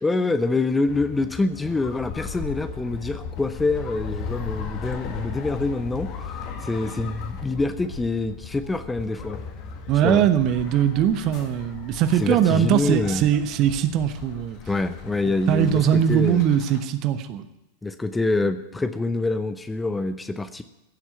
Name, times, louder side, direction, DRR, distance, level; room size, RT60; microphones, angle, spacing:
voice 1, 0.0-6.3 6.6-9.4 10.0-10.3 12.2-13.3 14.7-16.4 17.8-20.6, left 3 dB, 10° left, 11 dB, 0.7 m, -26 dB
sound 1, 0.9-16.8, left 6 dB, 40° left, 1.8 m, -37 dB
voice 2, 9.9-14.6 15.5-17.5, right 9 dB, 40° right, 11 dB, 1.0 m, -21 dB
16.0 x 7.4 x 9.5 m, 0.95 s
figure-of-eight pair, 90°, 0 cm